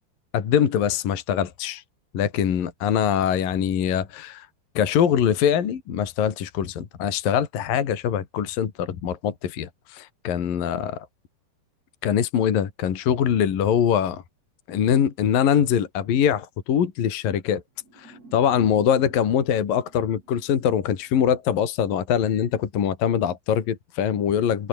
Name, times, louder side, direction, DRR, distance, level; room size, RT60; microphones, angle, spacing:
voice 1, 0.3-1.8 2.1-4.5 4.8-11.1 12.0-14.2 14.7-17.6 18.0-24.7, left 8 dB, 55° left, 4.0 m, -23 dB
sound 1, 17.8-21.0, right 3 dB, 35° right, 8.8 m, -49 dB
omnidirectional pair, 5.1 m